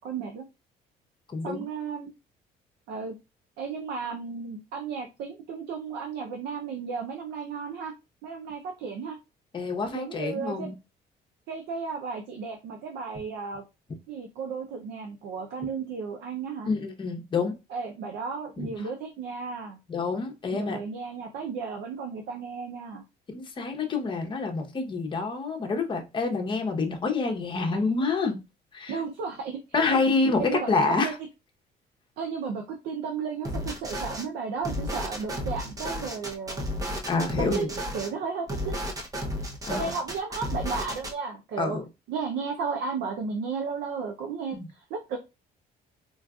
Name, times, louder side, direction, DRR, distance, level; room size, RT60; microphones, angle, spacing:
voice 1, 0.0-0.5 1.4-2.1 2.9-3.1 3.6-7.9 8.2-9.2 9.9-10.7 11.5-13.7 14.1-16.7 17.7-19.8 20.5-23.0 28.9-30.0 30.4-31.1 32.2-37.0 37.4-38.8 39.7-41.8 42.1-45.2, right 5 dB, 80° right, 0.6 m, -34 dB
voice 2, 1.3-1.7 9.5-10.7 16.7-17.5 18.6-18.7 19.9-20.8 23.3-28.4 28.7-29.0 29.7-31.2 37.1-37.7 39.6-39.9 41.6-41.8 44.5-44.7, left 4 dB, 30° left, 0.8 m, -27 dB
sound 1, 33.4-34.2 34.6-38.1 38.5-41.1, equal, 20° right, 0.7 m, -33 dB
3.9 x 2.4 x 2.3 m
cardioid pair, 110°, 17 cm